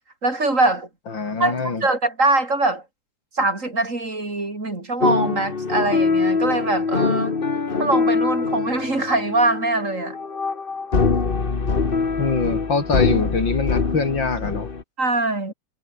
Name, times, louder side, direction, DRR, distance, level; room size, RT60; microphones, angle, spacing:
voice 1, 0.2-0.9 1.4-2.8 3.4-7.4 7.8-10.2 15.0-15.5, right 2 dB, 40° right, 4.3 m, -22 dB
voice 2, 1.1-1.8 12.2-14.7, left 4 dB, 80° left, 4.4 m, -24 dB
sound 1, 5.0-14.8, left 4 dB, 30° left, 1.6 m, -23 dB
omnidirectional pair, 2.0 m